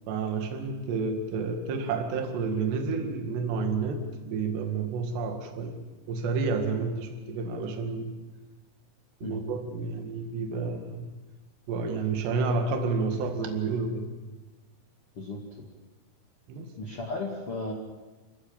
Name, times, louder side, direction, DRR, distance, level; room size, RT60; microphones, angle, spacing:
voice 1, 0.1-8.2 9.2-11.1 11.7-14.1 16.5-16.7, right 4 dB, 70° right, 5 dB, 4.0 m, -30 dB
voice 2, 15.2-15.7 16.8-17.7, left 2 dB, 40° left, 0 dB, 2.2 m, -35 dB
29.0 x 15.0 x 8.9 m, 1.2 s
omnidirectional pair, 5.3 m